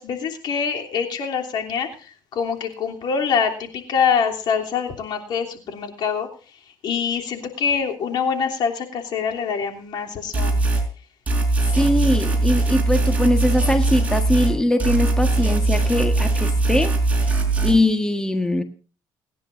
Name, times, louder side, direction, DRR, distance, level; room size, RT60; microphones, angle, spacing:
voice 1, 0.0-6.3 6.8-10.6, left 6 dB, 65° left, 2 dB, 3.2 m, -25 dB
sound 1, 10.3-10.9 11.3-14.5 14.8-17.7, right 2 dB, 15° right, 5.2 m, -20 dB
voice 2, 11.7-17.0 17.6-18.6, left 1 dB, 10° left, 7 dB, 1.5 m, -21 dB
29.0 x 10.0 x 2.6 m, 0.37 s
cardioid pair, 95°, 8 cm